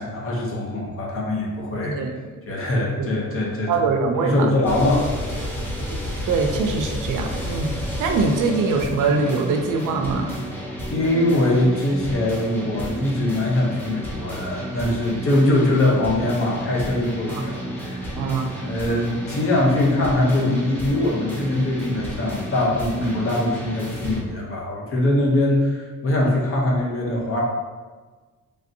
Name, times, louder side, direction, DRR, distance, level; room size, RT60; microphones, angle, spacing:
voice 1, 0.0-2.0 2.5-3.7 4.2-5.1 10.9-18.1 18.6-27.4, left 1 dB, 45° left, -3 dB, 0.7 m, -22 dB
voice 2, 3.7-4.5 6.3-7.7 8.0-10.4 17.3-17.5 18.1-18.5, right 4 dB, 75° right, 4 dB, 0.4 m, -23 dB
sound 1, 4.6-24.2, equal, 5° left, 0.5 m, -31 dB
3.3 x 2.5 x 2.6 m, 1.4 s
wide cardioid pair, 160°, 31 cm